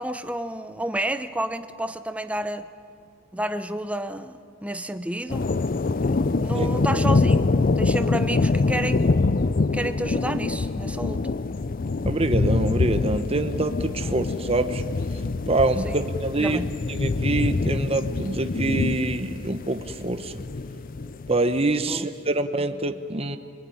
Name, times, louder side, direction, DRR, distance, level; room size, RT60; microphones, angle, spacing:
voice 1, 0.0-2.7 3.3-5.5 6.4-9.2 9.7-11.3 15.8-16.0 16.3-16.7 21.9-22.1, right 1 dB, 5° right, 9 dB, 0.9 m, -30 dB
sound 1, 5.3-21.4, left 3 dB, 45° left, 0.5 m, -25 dB
voice 2, 12.0-14.8 15.1-16.6 16.9-20.4 21.3-23.4, right 2 dB, 30° right, 8 dB, 1.0 m, -25 dB
26.0 x 21.0 x 10.0 m, 2.5 s
head